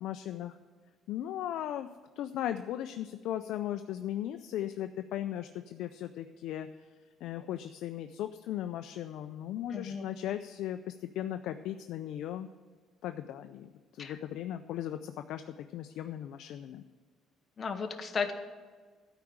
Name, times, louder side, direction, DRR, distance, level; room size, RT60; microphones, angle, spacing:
voice 1, 0.0-0.6 1.1-1.9 2.2-6.7 7.2-12.5 13.0-16.8, left 11 dB, 70° left, 8 dB, 0.4 m, -37 dB
voice 2, 9.7-10.0 14.0-14.2 17.6-18.3, left 5 dB, 30° left, 5 dB, 0.9 m, -34 dB
12.5 x 4.9 x 8.7 m, 1.4 s
cardioid pair, 130°, 0 cm